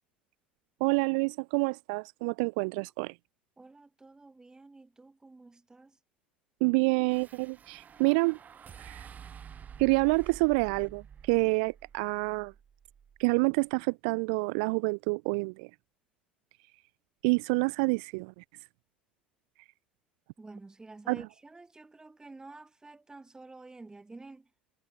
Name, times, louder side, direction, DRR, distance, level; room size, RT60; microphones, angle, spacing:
voice 1, 0.8-3.1 6.6-8.4 8.8-9.1 9.8-12.5 13.2-15.7 17.2-18.4 21.1-21.2, right 31 dB, 55° right, 0.6 m, -28 dB
voice 2, 3.6-6.0 20.4-24.5, right 3 dB, 15° right, 6.8 m, -50 dB
sound 1, 7.0-13.4, right 7 dB, 30° right, 4.8 m, -50 dB
figure-of-eight pair, 70°, 5 cm